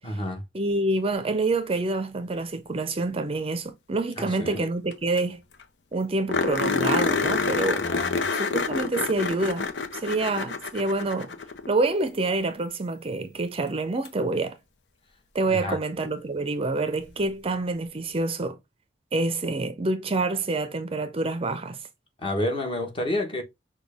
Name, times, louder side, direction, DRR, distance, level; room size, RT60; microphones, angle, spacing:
voice 1, 0.0-0.4 4.2-4.7 7.8-8.2 15.5-15.8 22.2-23.4, left 1 dB, 30° left, 1.2 m, -29 dB
voice 2, 0.5-5.4 5.9-7.9 8.4-11.3 11.7-14.6 15.3-18.6 19.1-21.8, right 2 dB, 35° right, 0.5 m, -27 dB
sound 1, 4.9-5.0 5.2-5.3 5.6-5.7 6.3-11.7 14.1-14.2 17.0-17.1, left 4 dB, 75° left, 0.7 m, -27 dB
6.0 x 2.3 x 3.4 m
head